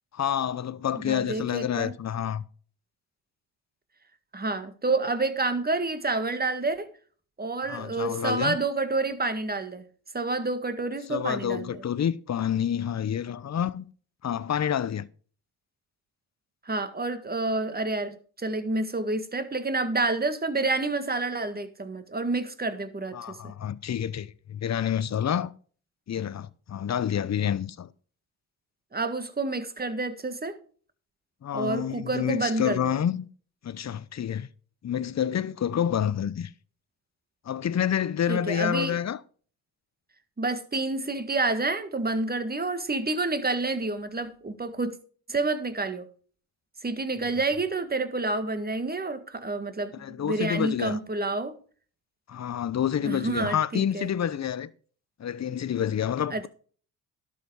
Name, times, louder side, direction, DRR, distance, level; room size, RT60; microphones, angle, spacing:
voice 1, 0.1-2.4 7.7-8.6 11.1-13.9 14.2-15.1 23.1-25.5 26.1-27.9 31.4-33.3 33.6-34.5 34.8-36.5 37.4-39.2 47.2-47.3 49.9-51.0 52.3-54.7 55.2-56.5, left 9 dB, 35° left, 0.8 m, -28 dB
voice 2, 1.0-1.9 4.3-6.9 7.4-9.8 10.1-11.8 16.7-23.4 28.9-30.6 31.5-32.9 38.3-39.0 40.4-45.0 45.3-46.1 46.8-51.5 53.0-54.1 56.3-56.5, right 3 dB, 20° right, 1.8 m, -29 dB
12.0 x 6.8 x 4.8 m
supercardioid pair, 60°, 46 cm